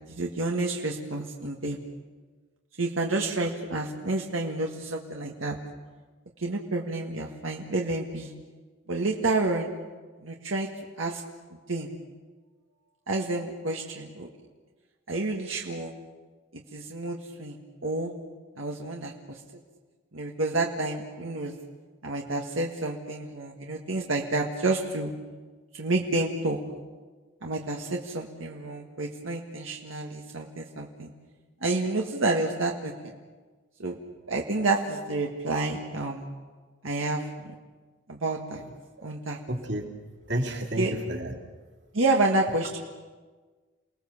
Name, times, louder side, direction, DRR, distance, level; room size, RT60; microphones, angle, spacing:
voice 1, 0.1-1.8 2.8-5.6 6.4-8.3 8.9-9.7 10.2-10.7 11.0-11.2 11.7-11.9 13.1-14.3 15.1-15.9 16.5-17.6 17.8-18.1 18.6-19.4 20.1-21.5 22.0-25.1 25.7-26.6 27.4-31.1 31.6-32.9 33.8-34.0 34.3-36.3 36.8-37.5 38.1-38.6 39.0-39.4 40.8-40.9 41.9-42.8, right 2 dB, 90° right, 0 dB, 1.8 m, -29 dB
voice 2, 39.5-39.9 40.3-41.4, right 1 dB, 60° right, 1 dB, 3.2 m, -30 dB
29.0 x 19.5 x 7.3 m, 1.4 s
head